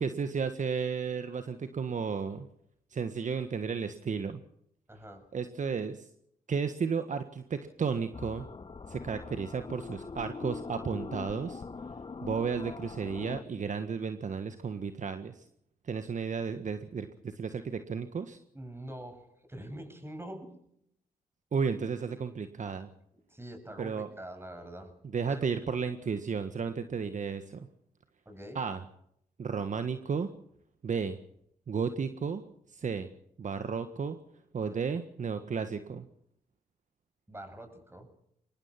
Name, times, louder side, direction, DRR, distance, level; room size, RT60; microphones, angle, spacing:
voice 1, 0.0-2.5 2.9-4.4 5.3-6.1 6.5-8.5 8.9-11.6 12.2-15.4 15.8-18.4 21.5-22.9 23.8-24.1 25.1-27.7 28.5-28.8 29.4-30.3 30.8-31.2 31.7-32.4 32.7-33.1 33.4-34.2 34.5-36.0, right 6 dB, 55° right, 9 dB, 1.6 m, -33 dB
voice 2, 4.9-5.3 18.5-20.6 23.3-24.9 25.3-25.5 28.3-28.6 37.3-38.1, right 1 dB, 15° right, 6 dB, 7.7 m, -44 dB
sound 1, 8.1-13.4, left 4 dB, 35° left, 1.1 m, -42 dB
24.5 x 19.5 x 5.9 m, 0.71 s
supercardioid pair, 50°, 15 cm